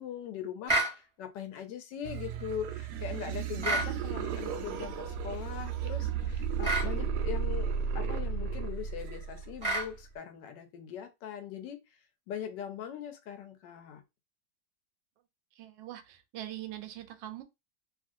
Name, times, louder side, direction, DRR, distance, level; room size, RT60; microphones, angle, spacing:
voice 1, 0.0-12.0 12.3-14.0, left 9 dB, 80° left, 1.3 m, -41 dB
sound 1, 0.7-1.0 3.6-3.9 6.6-6.9 9.6-9.9, right 2 dB, 25° right, 0.6 m, -28 dB
sound 2, 2.0-10.0, right 6 dB, 75° right, 1.0 m, -34 dB
voice 2, 15.6-17.4, right 13 dB, 90° right, 1.3 m, -42 dB
3.1 x 2.5 x 2.5 m
omnidirectional pair, 2.0 m